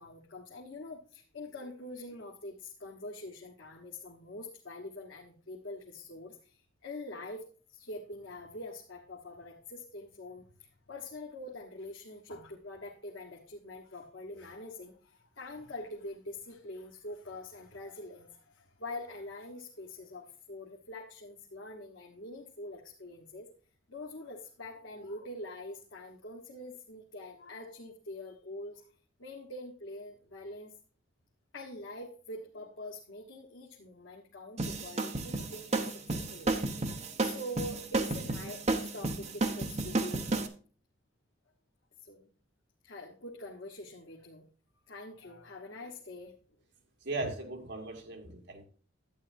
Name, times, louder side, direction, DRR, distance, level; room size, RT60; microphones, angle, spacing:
voice 1, 0.0-23.5 23.9-28.9 29.2-30.7 31.5-40.3 42.0-42.3 42.8-44.5 44.9-46.4, left 2 dB, 80° left, -1 dB, 1.3 m, -45 dB
sound 1, 34.6-40.5, right 2 dB, 35° right, 1.0 m, -32 dB
voice 2, 47.0-48.6, right 2 dB, 65° right, 2 dB, 2.1 m, -37 dB
11.5 x 9.1 x 2.7 m, 0.40 s
head